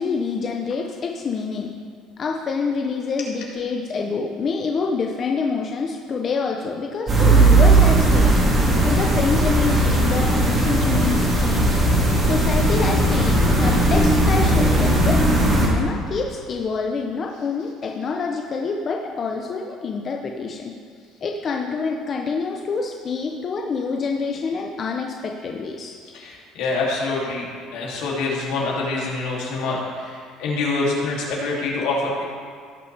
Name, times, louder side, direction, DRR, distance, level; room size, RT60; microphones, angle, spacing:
voice 1, 0.0-1.7 2.2-8.4 8.8-11.7 12.2-20.7 21.2-26.0, left 4 dB, 30° left, 1 dB, 0.6 m, -27 dB
sound 1, 7.1-15.7, right 2 dB, 25° right, 2.1 m, -17 dB
voice 2, 26.1-32.2, left 3 dB, 75° left, -4 dB, 2.6 m, -26 dB
16.5 x 6.0 x 3.3 m, 2.1 s
cardioid pair, 155°, 0 cm